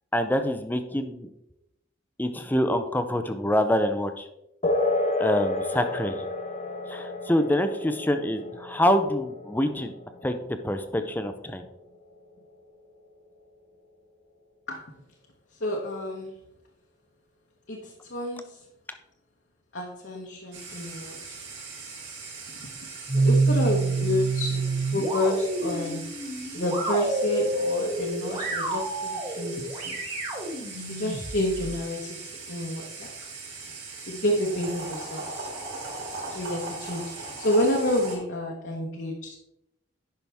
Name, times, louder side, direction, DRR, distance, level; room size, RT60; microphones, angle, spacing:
voice 1, 0.1-1.3 2.2-4.3 5.2-6.2 6.9-9.9 10.2-10.4 10.6-11.6, left 1 dB, 10° left, 8 dB, 0.5 m, -25 dB
sound 1, 4.6-12.6, left 2 dB, 35° left, 0.8 m, -31 dB
voice 2, 15.6-16.3 17.7-18.6 19.7-21.1 23.1-26.1 26.5-30.0 30.9-32.2 32.5-33.1 34.1-35.5 36.3-39.4, left 1 dB, 60° left, -1 dB, 1.1 m, -29 dB
sound 2, 20.5-38.2, right 3 dB, 75° right, 3.3 m, -40 dB
sound 3, 23.1-31.7, right 2 dB, 30° right, 2.0 m, -28 dB
10.5 x 5.7 x 3.5 m, 0.86 s
head